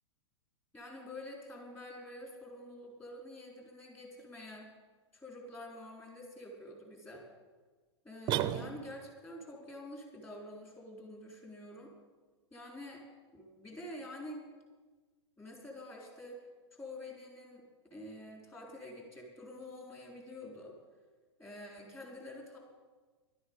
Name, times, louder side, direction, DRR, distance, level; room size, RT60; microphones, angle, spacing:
voice 1, 0.7-4.7 5.1-7.2 8.0-11.9 12.5-13.0 13.3-14.4 15.4-16.4 16.7-20.8 21.4-22.6, left 1 dB, 15° left, 0 dB, 3.9 m, -47 dB
sound 1, 8.3-9.2, right 12 dB, 30° right, 0.6 m, -33 dB
12.0 x 9.5 x 7.9 m, 1.4 s
hypercardioid pair, 110°, 15 cm